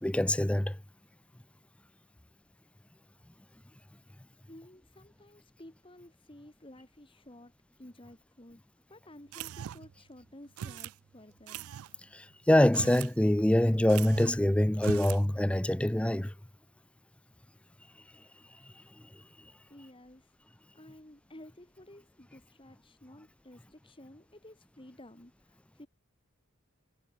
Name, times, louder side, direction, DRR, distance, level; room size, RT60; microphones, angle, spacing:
voice 1, 0.0-0.8 12.1-16.3, left 1 dB, 5° left, 0.4 m, -25 dB
voice 2, 4.4-11.7 19.5-25.9, left 1 dB, 25° left, 1.7 m, -53 dB
sound 1, 9.3-10.0 10.6-11.0 11.5-11.9 12.6-13.2 13.4-13.5 13.9-14.4 14.8-15.2, right 9 dB, 85° right, 0.4 m, -40 dB
head